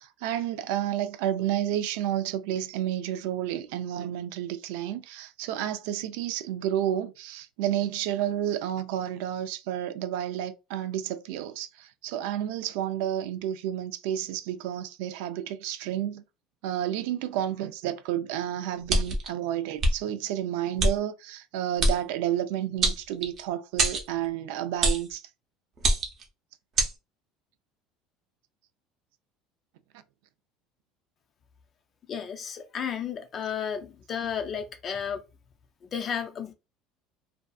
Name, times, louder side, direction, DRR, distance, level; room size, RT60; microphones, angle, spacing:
voice 1, 0.0-16.2 16.6-25.2, right 11 dB, 80° right, 0.3 m, -31 dB
sound 1, 18.9-19.3 19.8-19.9 20.8-20.9 21.8-22.0 22.8-23.4 23.8-24.1 24.8-25.1 25.8-26.2 26.8-26.9, right 2 dB, 30° right, 0.6 m, -24 dB
voice 2, 32.1-35.2 35.8-36.5, left 7 dB, 25° left, 0.4 m, -33 dB
2.5 x 2.3 x 2.3 m
cardioid pair, 175°, 0 cm